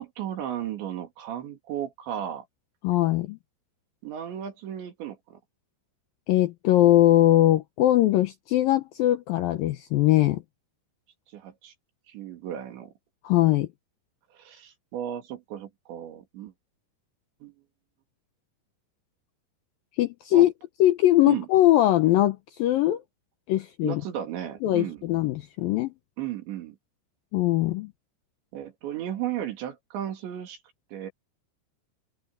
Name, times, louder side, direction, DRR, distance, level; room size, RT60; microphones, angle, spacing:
voice 1, 0.0-2.4 4.0-5.4 11.3-11.7 12.1-12.9 14.3-16.5 17.4-17.5 20.3-20.5 21.3-21.5 23.8-25.0 26.2-26.8 28.5-30.6 30.9-31.1, right 11 dB, 80° right, 5.0 m, -34 dB
voice 2, 2.8-3.4 6.3-10.4 13.2-13.7 20.0-20.5 20.8-23.0 23.5-24.0 24.6-25.9 27.3-27.9, left 14 dB, 75° left, 2.1 m, -21 dB
omnidirectional pair, 5.1 m